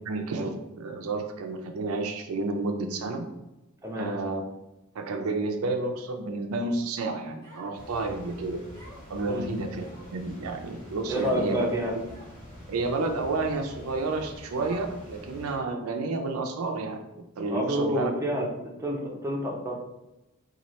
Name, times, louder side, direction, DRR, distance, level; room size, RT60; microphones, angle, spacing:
voice 1, 0.0-3.2 3.9-4.4 4.9-8.6 9.1-9.8 10.1-11.7 12.7-17.0 17.4-18.1, right 3 dB, 80° right, 5 dB, 0.5 m, -30 dB
Human voice, 7.4-8.0 8.7-9.2 9.8-10.4 11.1-11.4 12.1-12.5 13.2-13.3 14.6-15.2, equal, 20° left, 1.3 m, -49 dB
sound 1, 7.7-15.6, left 1 dB, 40° left, 1.2 m, -46 dB
voice 2, 11.1-11.9 17.5-18.5 18.8-19.7, equal, 15° right, -2 dB, 0.6 m, -28 dB
4.1 x 2.4 x 3.0 m, 0.95 s
head